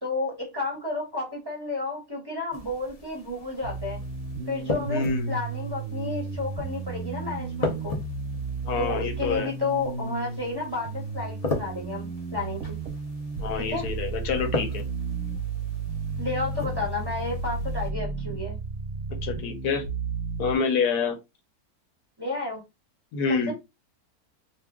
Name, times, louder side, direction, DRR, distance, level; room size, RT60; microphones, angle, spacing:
voice 1, 0.0-4.0 4.5-8.0 8.8-12.8 13.6-13.9 16.2-18.6 22.2-22.6 23.5-23.6, left 3 dB, 20° right, 0.7 m, -31 dB
sound 1, 2.5-17.9, left 2 dB, 60° left, 0.3 m, -38 dB
sound 2, 3.6-20.6, right 4 dB, 65° right, 0.9 m, -33 dB
voice 2, 4.9-5.3 8.6-9.5 13.4-14.8 19.2-19.8 20.4-21.2 23.1-23.5, left 5 dB, 85° left, 1.3 m, -27 dB
2.9 x 2.1 x 3.5 m
omnidirectional pair, 1.6 m